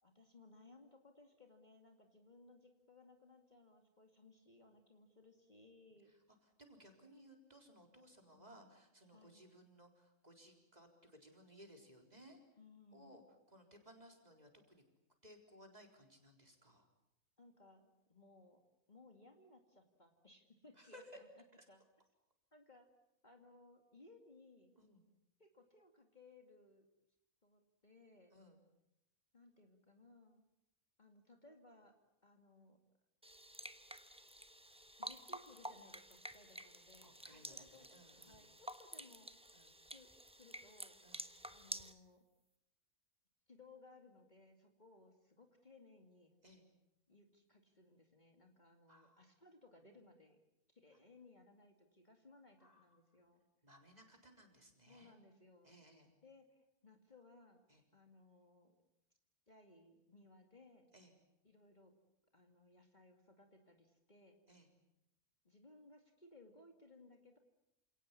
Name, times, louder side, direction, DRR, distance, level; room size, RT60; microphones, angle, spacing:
voice 1, 0.0-6.1 8.3-8.7 9.1-9.5 12.6-13.1 17.4-18.6 18.9-21.3 21.7-21.8 22.5-22.9 23.2-24.8 25.4-26.9 27.4-28.4 29.3-30.5 31.0-31.9 32.2-32.8 35.0-37.9 38.2-39.3 39.9-40.1 40.4-41.0 41.5-42.3 43.5-46.4 47.1-50.4 50.7-53.4 54.9-55.8 56.2-57.6 57.9-58.8 59.5-60.9 61.4-61.9 62.3-64.4 65.4-67.4, left 2 dB, 30° left, 4 dB, 2.4 m, -63 dB
voice 2, 6.6-12.4 12.9-13.2 13.5-14.8 15.2-16.9 20.8-21.0 24.8-25.0 28.3-28.6 37.0-38.5 39.5-39.8 41.0-41.2 46.4-46.6 48.9-49.2 52.6-52.9 53.6-55.1 55.6-56.1 57.7-57.8 60.9-61.1 64.5-64.7, equal, 30° right, 3 dB, 4.2 m, -61 dB
sound 1, 33.2-41.9, right 1 dB, 5° right, 1.0 m, -51 dB
28.5 x 18.0 x 9.7 m, 0.87 s
omnidirectional pair, 1.5 m